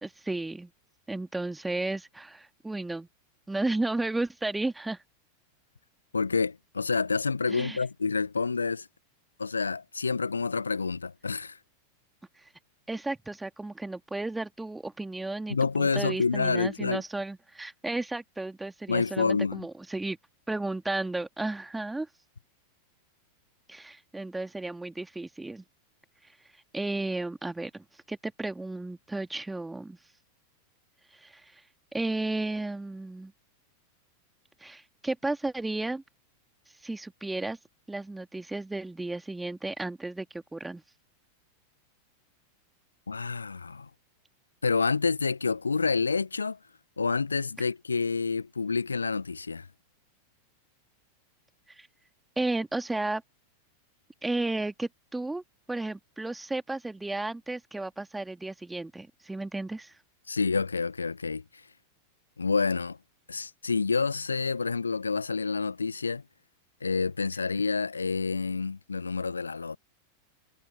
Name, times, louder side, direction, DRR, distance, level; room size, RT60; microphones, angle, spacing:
voice 1, 0.0-0.7 1.1-3.1 3.5-5.0 7.5-7.8 12.9-20.2 20.5-22.1 23.7-25.6 26.7-30.0 31.1-31.6 31.9-33.3 34.6-36.0 36.8-37.6 37.9-40.8 51.8-51.9 52.4-53.2 54.2-55.4 55.7-60.0, right 2 dB, 5° right, 2.2 m, -33 dB
voice 2, 6.1-8.9 9.4-11.6 15.5-17.0 18.9-19.6 43.1-43.9 44.6-46.6 47.0-49.7 60.3-61.4 62.4-63.0 63.3-66.2 66.8-69.8, left 4 dB, 75° left, 1.5 m, -28 dB
figure-of-eight pair, 90°, 0 cm